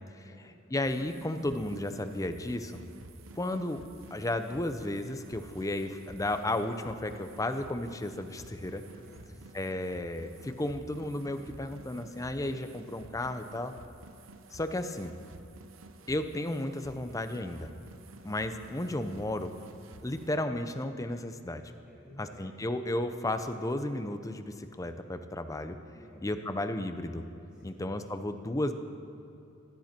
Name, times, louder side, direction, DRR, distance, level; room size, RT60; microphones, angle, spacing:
voice 1, 0.2-0.5 9.0-9.4 21.9-22.4 25.9-26.5 27.5-27.8, equal, 5° right, -11 dB, 3.8 m, -54 dB
voice 2, 0.7-2.8 3.4-3.8 4.1-8.8 9.5-13.7 14.5-15.2 16.1-17.7 18.2-19.5 20.0-21.6 22.2-25.8 26.2-27.2 27.6-28.7, left 1 dB, 15° left, 8 dB, 0.6 m, -33 dB
sound 1, 0.8-20.3, right 2 dB, 85° right, 0.8 m, -51 dB
16.0 x 13.0 x 4.4 m, 2.8 s
head